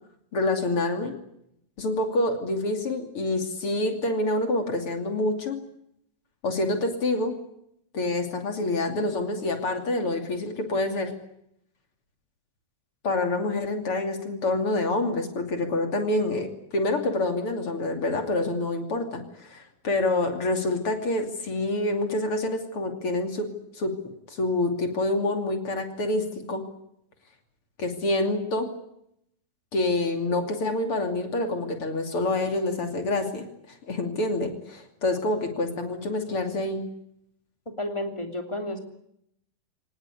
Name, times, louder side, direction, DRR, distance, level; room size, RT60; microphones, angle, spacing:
voice 1, 0.3-1.1 1.8-5.6 6.4-7.3 7.9-11.1 13.0-23.5 23.8-26.6 27.8-28.7 29.7-36.8, left 2 dB, 40° left, 5 dB, 3.2 m, -27 dB
voice 2, 37.7-38.8, left 1 dB, 10° left, 4 dB, 2.4 m, -31 dB
24.5 x 18.5 x 9.8 m, 0.77 s
omnidirectional pair, 4.3 m